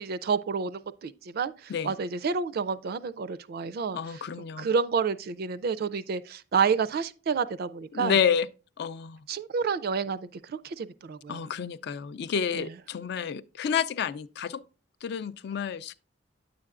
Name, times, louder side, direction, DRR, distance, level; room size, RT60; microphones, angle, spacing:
voice 1, 0.0-4.0 4.6-8.2 9.3-11.5 12.5-12.7, right 5 dB, 50° right, 0.4 m, -29 dB
voice 2, 3.9-4.7 7.9-8.5 8.8-9.2 11.3-14.6 15.0-15.9, left 7 dB, 55° left, 0.4 m, -29 dB
9.5 x 7.6 x 2.4 m
head